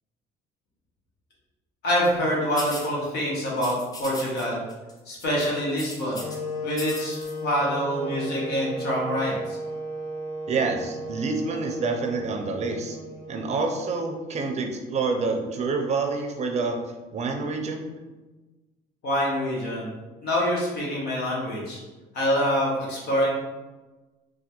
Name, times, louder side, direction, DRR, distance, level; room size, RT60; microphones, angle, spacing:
voice 1, 1.8-4.6 5.1-6.2 6.6-9.6 19.0-19.9 20.2-21.8 22.1-23.3, equal, 75° left, -4 dB, 1.1 m, -26 dB
sound 1, 2.6-2.9 3.6-4.4 4.7-4.9 5.2-6.4 6.7-7.3, left 2 dB, 20° left, 0.5 m, -38 dB
sound 2, 6.1-14.1, right 1 dB, 45° left, 1.4 m, -35 dB
voice 2, 10.5-13.0 13.3-16.8 17.1-17.9, right 4 dB, 40° right, 4 dB, 0.5 m, -27 dB
3.2 x 2.2 x 2.9 m, 1.2 s
cardioid pair, 110°, 17 cm